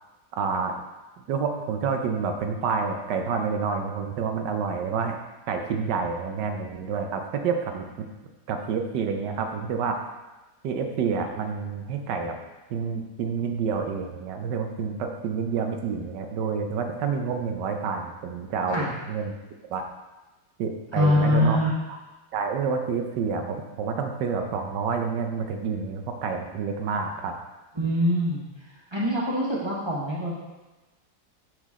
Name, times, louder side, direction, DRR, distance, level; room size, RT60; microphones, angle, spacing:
voice 1, 0.4-0.7 1.3-5.2 5.5-8.1 8.5-10.0 10.6-12.4 12.7-19.3 19.7-19.8 20.6-21.6 22.3-27.3, right 5 dB, 80° right, 4 dB, 1.4 m, -28 dB
voice 2, 20.9-21.7 27.7-28.4 28.9-30.3, left 1 dB, 15° right, -6 dB, 1.2 m, -23 dB
6.2 x 5.9 x 3.6 m, 1.1 s
omnidirectional pair, 1.9 m